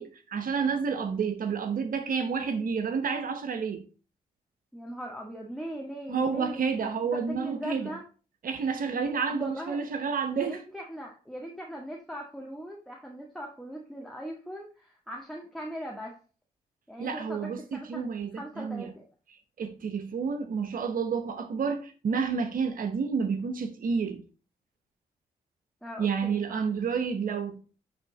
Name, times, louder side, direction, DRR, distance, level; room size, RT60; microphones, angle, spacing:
voice 1, 0.0-3.8 6.1-7.9 8.4-10.6 17.0-18.9 19.6-24.2 26.0-27.6, right 5 dB, 60° right, 0.9 m, -30 dB
voice 2, 4.7-6.6 7.1-8.0 9.3-9.8 10.3-16.2 16.9-18.0 18.3-19.0 25.8-26.6, equal, ahead, 1.6 m, -40 dB
8.9 x 3.5 x 3.9 m
cardioid pair, 60°, 16 cm